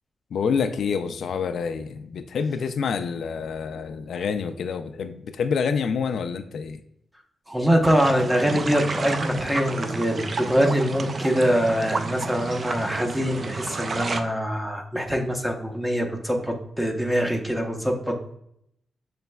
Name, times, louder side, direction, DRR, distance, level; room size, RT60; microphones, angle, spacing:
voice 1, 0.3-6.8, left 6 dB, 80° left, 9 dB, 0.3 m, -27 dB
voice 2, 7.5-18.4, equal, 10° right, 2 dB, 0.8 m, -24 dB
sound 1, 7.8-14.2, right 3 dB, 50° right, 0.4 m, -31 dB
6.9 x 3.1 x 2.2 m, 0.74 s
cardioid pair, 90°, 0 cm